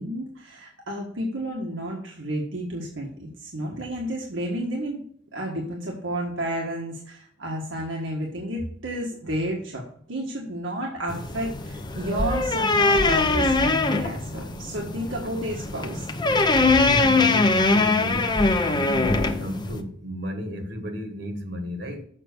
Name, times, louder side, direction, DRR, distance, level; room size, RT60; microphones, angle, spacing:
voice 1, 0.0-5.0 5.3-9.8 10.1-16.1, right 1 dB, 80° right, 1.6 m, -31 dB
sound 1, 11.1-19.8, left 3 dB, 25° left, 0.7 m, -22 dB
voice 2, 16.7-22.0, equal, 60° right, 1.6 m, -33 dB
7.5 x 5.7 x 6.6 m
head